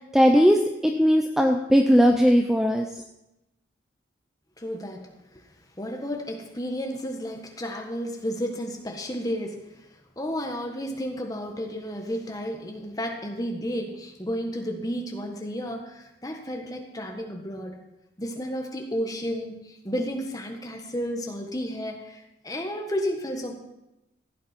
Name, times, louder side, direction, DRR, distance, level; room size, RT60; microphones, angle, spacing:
voice 1, 0.1-2.9, equal, 5° right, 3 dB, 0.5 m, -19 dB
voice 2, 4.6-5.1 5.8-9.6 10.2-17.7 18.2-23.5, equal, 20° left, 2 dB, 1.5 m, -32 dB
15.5 x 8.8 x 4.5 m, 0.93 s
head